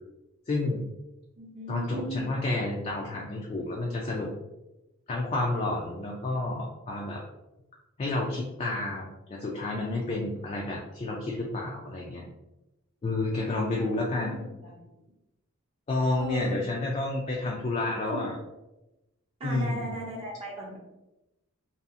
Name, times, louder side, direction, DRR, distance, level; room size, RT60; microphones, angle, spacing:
voice 1, 0.5-0.8 1.7-4.3 5.1-7.2 8.0-12.3 13.0-14.4 15.9-18.3 19.4-19.9, left 2 dB, 30° left, -2 dB, 0.3 m, -30 dB
voice 2, 1.4-2.3 13.8-14.9 16.2-16.6 18.1-18.3 19.4-20.8, right 1 dB, 25° right, -4 dB, 0.5 m, -37 dB
2.7 x 2.3 x 2.4 m, 0.96 s
head